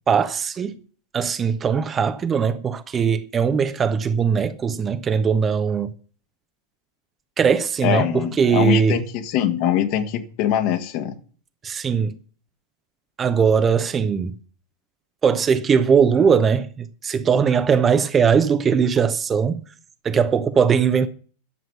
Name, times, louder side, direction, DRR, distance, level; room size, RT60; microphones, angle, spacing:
voice 1, 0.1-0.8 1.1-5.9 7.4-9.0 11.6-12.2 13.2-14.4 15.2-19.6 20.0-21.1, right 6 dB, 20° right, 0.8 m, -20 dB
voice 2, 7.8-11.1, left 10 dB, 45° left, 1.7 m, -23 dB
11.0 x 7.6 x 8.3 m
figure-of-eight pair, 90°, 0 cm